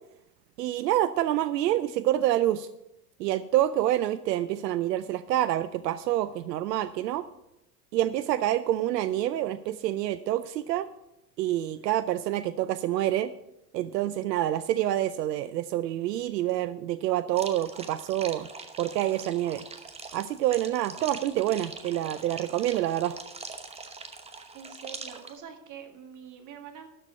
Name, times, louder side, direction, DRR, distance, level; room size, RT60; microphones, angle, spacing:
voice 1, 0.6-2.7 3.2-7.2 7.9-10.9 11.4-13.3 13.7-18.5 18.8-19.6 20.1-23.2, right 13 dB, 85° right, 13 dB, 0.6 m, -27 dB
sound 1, 17.3-25.4, right 4 dB, 15° right, 0.9 m, -43 dB
voice 2, 24.5-26.9, right 7 dB, 40° right, 6 dB, 1.9 m, -45 dB
12.5 x 4.4 x 7.9 m, 0.89 s
hypercardioid pair, 110°, 48 cm